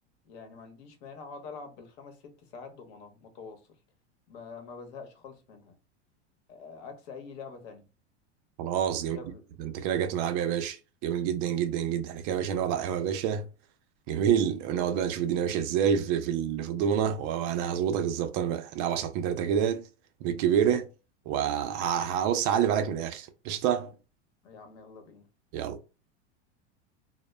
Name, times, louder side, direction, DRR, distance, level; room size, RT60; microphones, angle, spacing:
voice 1, 0.2-3.6 4.3-5.8 6.5-7.9 9.0-9.4 24.4-25.3, left 5 dB, 60° left, 0.9 m, -45 dB
voice 2, 8.6-9.2 9.6-13.5 14.1-19.8 20.2-20.9 21.3-23.9 25.5-25.8, right 9 dB, 50° right, 0.4 m, -28 dB
2.1 x 2.1 x 3.2 m
hypercardioid pair, 115°, 35 cm